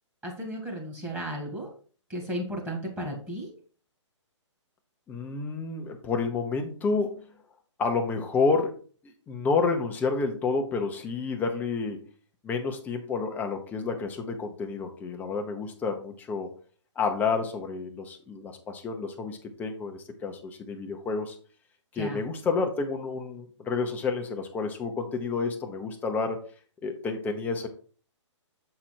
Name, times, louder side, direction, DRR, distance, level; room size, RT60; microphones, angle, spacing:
voice 1, 0.2-1.7 2.1-3.5 21.9-22.2, equal, 10° right, -1 dB, 2.1 m, -34 dB
voice 2, 5.1-7.3 7.8-8.8 9.0-12.0 12.4-16.5 17.0-21.4 21.9-26.4 26.8-27.7, left 4 dB, 10° left, 4 dB, 0.9 m, -29 dB
7.6 x 4.4 x 4.4 m, 0.42 s
hypercardioid pair, 150°, 16 cm